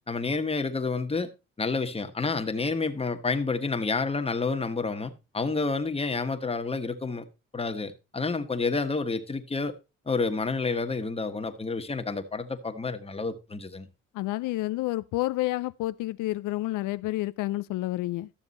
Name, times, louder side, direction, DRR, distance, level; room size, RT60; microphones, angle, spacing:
voice 1, 0.1-1.3 1.6-7.2 7.5-9.7 10.1-13.9, left 4 dB, 20° left, 1.4 m, -29 dB
voice 2, 14.1-18.3, left 17 dB, 85° left, 0.5 m, -29 dB
13.0 x 7.1 x 4.1 m
cardioid pair, 90°, 30 cm